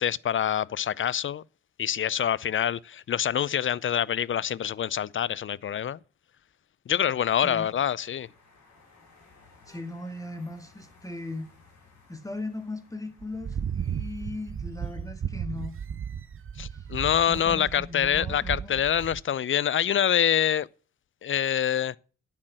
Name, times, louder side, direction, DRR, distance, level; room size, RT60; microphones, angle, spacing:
voice 1, 0.0-1.4 1.8-6.0 6.9-8.3 16.6-20.7 21.2-22.0, left 9 dB, 40° left, 0.6 m, -26 dB
sound 1, 7.0-17.7, left 3 dB, 60° left, 6.4 m, -60 dB
voice 2, 7.4-7.7 9.7-11.5 12.1-15.8 16.7-16.9 17.3-18.8, left 2 dB, 10° left, 1.8 m, -38 dB
sound 2, 13.2-19.2, right 8 dB, 40° right, 0.9 m, -35 dB
9.7 x 8.8 x 6.2 m
hypercardioid pair, 45°, 32 cm